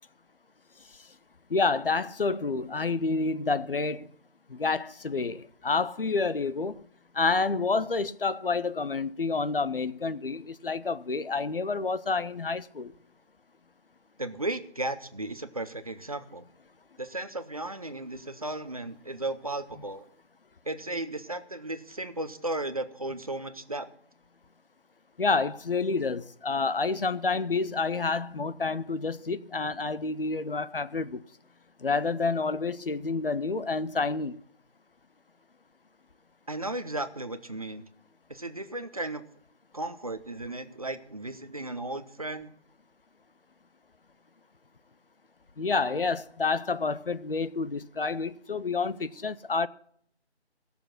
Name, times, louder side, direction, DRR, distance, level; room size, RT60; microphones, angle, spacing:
voice 1, 1.5-4.1 4.5-6.8 7.1-12.9 25.2-31.2 31.8-34.4 45.6-49.7, left 4 dB, 55° left, 0.6 m, -29 dB
voice 2, 14.2-16.4 17.0-20.1 20.7-23.9 36.5-37.9 38.3-39.2 39.7-42.5, right 2 dB, 35° right, 0.7 m, -35 dB
17.0 x 6.9 x 5.9 m
figure-of-eight pair, 170°, 34 cm